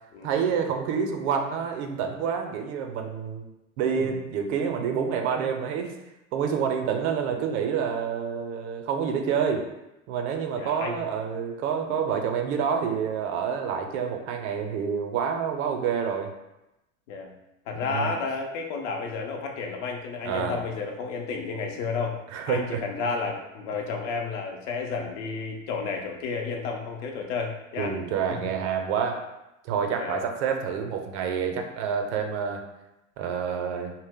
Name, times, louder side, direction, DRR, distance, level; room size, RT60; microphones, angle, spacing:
voice 1, 0.2-3.5 3.8-5.9 6.3-9.7 10.1-16.3 17.7-18.1 20.3-20.6 22.3-22.8 27.8-29.2 29.6-32.6 33.2-33.9, right 7 dB, 60° right, 4 dB, 0.5 m, -28 dB
voice 2, 10.6-11.0 11.8-12.0 17.1-17.3 17.7-22.2 22.5-27.9 29.9-30.2, left 4 dB, 60° left, 2 dB, 0.6 m, -31 dB
2.1 x 2.0 x 3.5 m, 0.94 s
hypercardioid pair, 85°, 40 cm